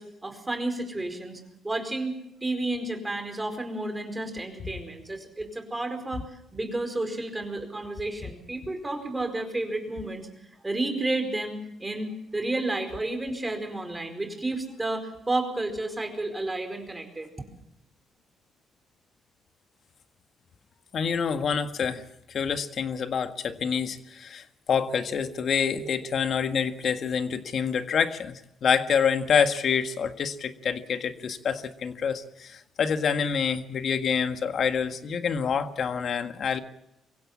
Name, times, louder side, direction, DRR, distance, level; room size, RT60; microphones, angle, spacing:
voice 1, 0.0-2.2 2.4-6.3 6.5-10.3 10.6-17.3, right 2 dB, 15° right, 5 dB, 4.7 m, -31 dB
voice 2, 20.9-36.6, left 6 dB, 55° left, 8 dB, 1.7 m, -27 dB
23.5 x 16.5 x 7.3 m, 0.81 s
cardioid pair, 90°, 0 cm